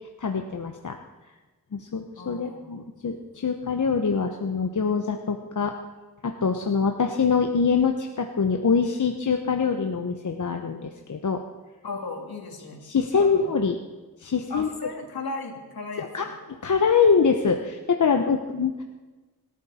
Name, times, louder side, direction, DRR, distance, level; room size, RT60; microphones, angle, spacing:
voice 1, 0.2-1.0 1.7-5.7 6.2-11.4 12.8-13.8 14.2-14.7 16.0-18.8, left 5 dB, 55° left, 4 dB, 1.0 m, -24 dB
voice 2, 2.2-2.7 11.8-12.8 13.2-13.6 14.5-16.3, left 3 dB, 70° left, 1 dB, 3.1 m, -36 dB
25.0 x 12.5 x 4.3 m, 1.3 s
wide cardioid pair, 75°, 37 cm